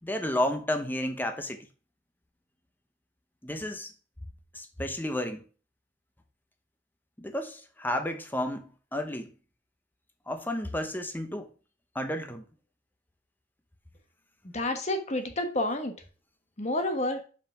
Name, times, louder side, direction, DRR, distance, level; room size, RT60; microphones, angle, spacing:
voice 1, 0.0-1.7 3.4-3.9 4.5-5.4 7.2-9.3 10.3-11.5 11.9-12.4, left 1 dB, 10° left, 0.9 m, -32 dB
voice 2, 14.5-15.9 16.6-17.2, left 1 dB, 35° left, 1.2 m, -29 dB
5.7 x 5.1 x 5.8 m
head